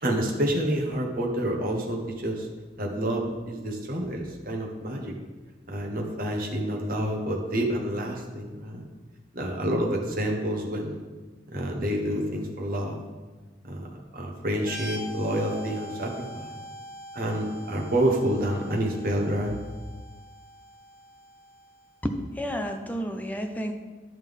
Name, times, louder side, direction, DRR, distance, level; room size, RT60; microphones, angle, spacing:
voice 1, 0.0-2.5 2.8-5.1 5.7-8.8 9.3-11.0 11.5-13.0 13.6-16.5 17.1-19.6, right 1 dB, 50° right, 0 dB, 1.3 m, -28 dB
sound 1, 14.6-22.1, equal, 65° left, 1.3 m, -43 dB
voice 2, 22.0-23.7, equal, 10° left, 5 dB, 0.5 m, -31 dB
11.0 x 5.8 x 3.6 m, 1.3 s
head